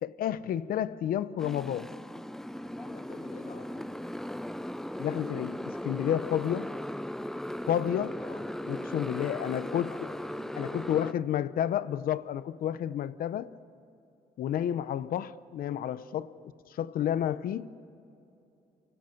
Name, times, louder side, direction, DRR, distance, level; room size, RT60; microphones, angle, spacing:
voice 1, 0.0-1.9 5.0-6.7 7.7-8.2 8.7-10.1 10.6-13.5 14.4-16.3 16.7-17.7, left 10 dB, 75° left, 0.7 m, -30 dB
Motorcycle, 1.4-11.1, left 1 dB, 5° left, 0.5 m, -38 dB
voice 2, 2.6-4.0 7.9-11.1, left 4 dB, 45° left, 2.6 m, -49 dB
29.5 x 17.5 x 7.8 m
cardioid pair, 115°, 15 cm